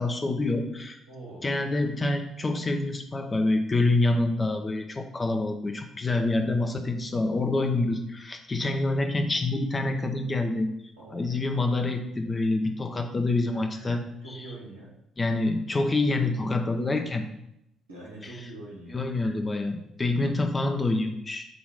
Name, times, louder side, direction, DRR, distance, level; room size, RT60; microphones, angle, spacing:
voice 1, 0.0-1.0 1.4-10.7 11.1-14.0 14.3-14.4 15.2-17.3 18.2-18.4 18.9-21.5, left 2 dB, 25° left, 5 dB, 0.8 m, -27 dB
voice 2, 1.1-1.5 11.0-11.3 13.5-14.9 17.9-19.3, right 2 dB, 85° right, -8 dB, 1.9 m, -44 dB
8.1 x 3.0 x 4.9 m, 0.78 s
figure-of-eight pair, 45°, 0 cm